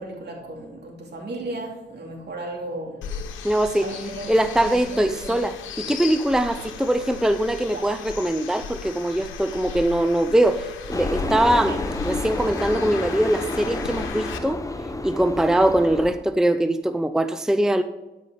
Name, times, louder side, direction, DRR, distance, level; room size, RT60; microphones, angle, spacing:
voice 1, 0.0-3.0 3.8-5.4 7.7-7.8 11.6-11.8, right 1 dB, 60° right, 1 dB, 2.8 m, -35 dB
sound 1, 3.0-14.4, left 6 dB, 85° left, 1.1 m, -36 dB
voice 2, 3.4-3.9 4.3-11.8 12.0-14.6 15.0-17.8, right 1 dB, 5° right, 10 dB, 0.6 m, -22 dB
sound 2, 10.9-16.1, left 2 dB, 15° left, 1.0 m, -30 dB
12.5 x 5.6 x 5.1 m, 1.1 s
supercardioid pair, 55°, 19 cm